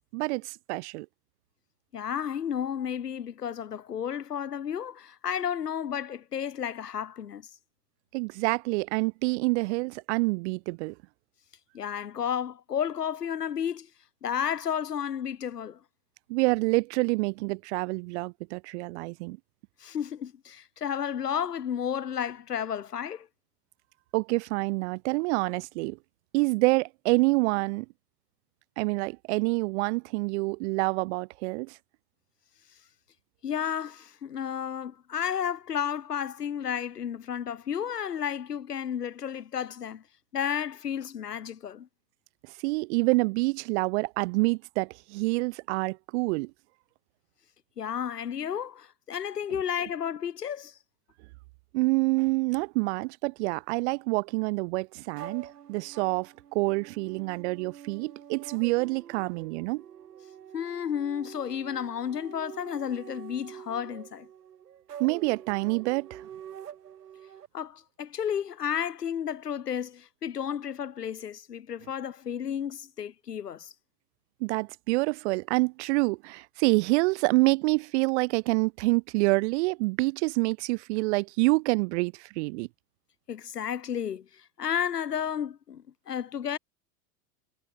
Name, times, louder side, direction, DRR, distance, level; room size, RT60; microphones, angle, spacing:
voice 1, 0.1-1.1 8.1-10.9 16.3-19.4 24.1-26.0 26.3-27.9 28.8-31.8 42.6-46.5 51.7-59.8 65.0-66.3 74.4-82.7, right 25 dB, 50° right, 0.5 m, -27 dB
voice 2, 1.9-7.5 11.7-13.9 14.2-15.8 19.8-23.3 33.4-40.0 40.3-41.9 47.8-50.7 60.5-64.3 67.5-73.7 83.3-86.6, left 8 dB, 90° left, 2.1 m, -32 dB
sound 1, 55.2-67.5, right 9 dB, 85° right, 3.6 m, -46 dB
hypercardioid pair, 100°, 46 cm